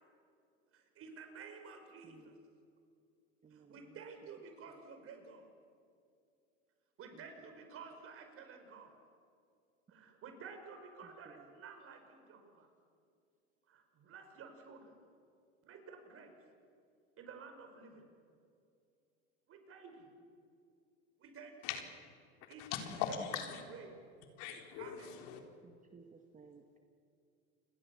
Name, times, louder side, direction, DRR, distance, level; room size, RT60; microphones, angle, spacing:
voice 1, 0.7-2.3 3.5-5.5 7.0-8.9 9.9-12.7 13.7-15.0 15.6-16.3 17.2-18.1 19.5-20.1 21.2-21.6 22.5-22.7 23.1-23.4 23.7-23.9 24.8-25.1, right 5 dB, 45° right, 5 dB, 5.4 m, -52 dB
voice 2, 2.0-2.4 3.4-4.0 4.7-4.8 7.1-7.6 11.0-11.5 25.6-26.8, right 5 dB, 25° right, 5 dB, 1.8 m, -60 dB
voice 3, 22.6-23.6 24.4-25.4, left 8 dB, 65° left, 4 dB, 3.8 m, -40 dB
29.0 x 22.0 x 7.2 m, 2.4 s
hypercardioid pair, 95°, 33 cm